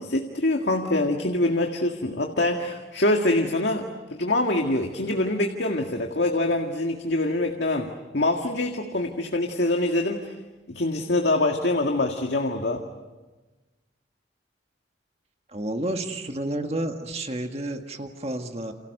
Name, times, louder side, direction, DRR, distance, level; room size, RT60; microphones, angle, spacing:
voice 1, 0.0-10.3 10.7-12.8, left 2 dB, 75° left, 3 dB, 1.9 m, -25 dB
voice 2, 15.5-18.7, right 1 dB, 35° right, 4 dB, 1.8 m, -30 dB
29.5 x 28.0 x 6.6 m, 1.2 s
head